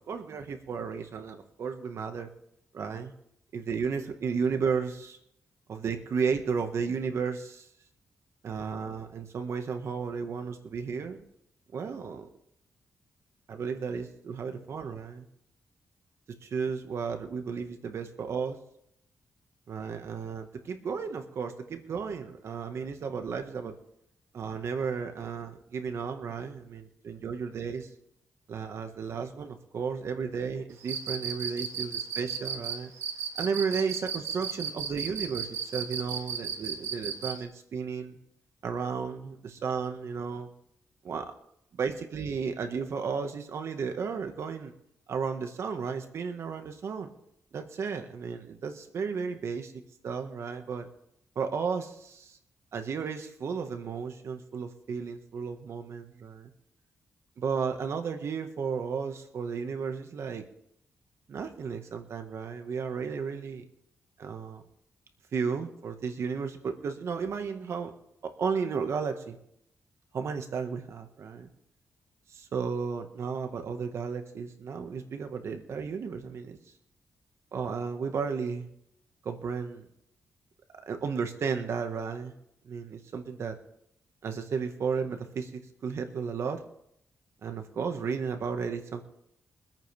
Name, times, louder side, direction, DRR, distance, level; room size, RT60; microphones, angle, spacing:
voice 1, 0.1-2.3 2.7-3.1 3.5-5.2 5.7-7.7 8.4-11.2 11.7-12.3 13.5-15.2 16.4-18.6 19.7-23.7 24.3-27.9 28.5-32.9 33.4-38.2 38.6-40.5 41.0-41.3 41.7-44.7 45.1-47.1 47.5-49.7 50.0-50.9 51.3-52.4 52.7-56.5 57.4-60.4 61.3-63.6 64.2-64.6 65.3-67.9 68.2-69.4 70.1-71.5 72.3-76.6 77.5-78.7 79.2-79.8 80.9-82.3 82.6-83.5 84.2-86.6 87.4-89.0, right 5 dB, 65° right, 6 dB, 1.7 m, -33 dB
Cricket, 30.8-37.4, right 7 dB, 85° right, 1.9 m, -34 dB
24.0 x 9.0 x 3.5 m, 0.75 s
cardioid pair, 90°, 5 cm